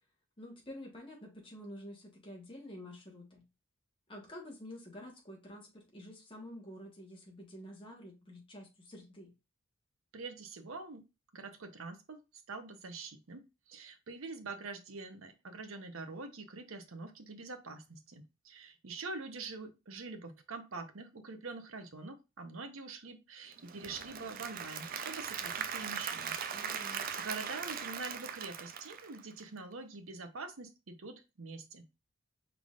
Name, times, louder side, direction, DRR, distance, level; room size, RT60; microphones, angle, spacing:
voice 1, 0.4-3.4 4.1-9.3 26.5-27.1, equal, 25° left, 1.2 m, -49 dB
voice 2, 10.1-11.0 11.3-26.4 26.9-31.8, right 3 dB, 75° right, 0.8 m, -45 dB
Applause / Crowd, 23.5-29.6, right 7 dB, 40° right, 0.4 m, -40 dB
5.0 x 3.6 x 2.4 m
head